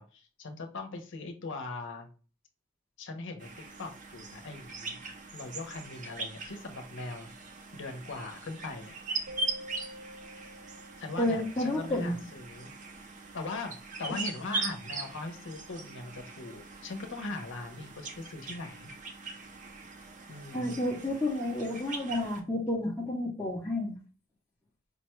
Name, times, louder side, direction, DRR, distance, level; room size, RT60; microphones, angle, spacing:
voice 1, 0.0-2.1 3.0-3.5 3.8-7.3 7.7-9.0 11.0-12.7 13.3-18.9 20.3-20.8, left 3 dB, 60° left, 5 dB, 0.7 m, -40 dB
sound 1, 3.4-22.4, right 3 dB, 35° right, 0.5 m, -41 dB
sound 2, 9.3-11.9, left 1 dB, 90° right, 1.0 m, -48 dB
voice 2, 11.2-12.2 20.5-24.0, left 1 dB, 10° left, -5 dB, 0.6 m, -30 dB
5.1 x 2.2 x 3.0 m, 0.37 s
head